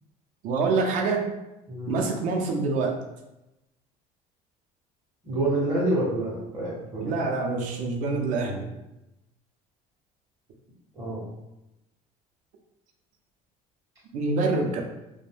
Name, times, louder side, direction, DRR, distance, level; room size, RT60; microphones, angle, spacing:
voice 1, 0.4-1.3 1.9-3.0 7.0-8.7 14.1-14.8, right 3 dB, 60° right, 2 dB, 0.5 m, -26 dB
voice 2, 1.7-2.0 5.2-7.2 11.0-11.2, right 1 dB, 20° right, -8 dB, 0.7 m, -27 dB
2.5 x 2.1 x 3.3 m, 0.95 s
cardioid pair, 150°, 15 cm